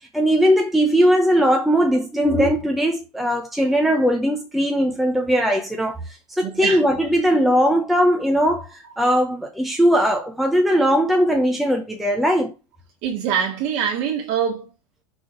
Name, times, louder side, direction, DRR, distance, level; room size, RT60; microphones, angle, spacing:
voice 1, 0.1-12.5, equal, ahead, 0.7 m, -19 dB
voice 2, 6.4-6.8 13.0-14.6, right 8 dB, 40° right, 2.0 m, -24 dB
6.2 x 3.6 x 4.9 m
supercardioid pair, 165°, 16 cm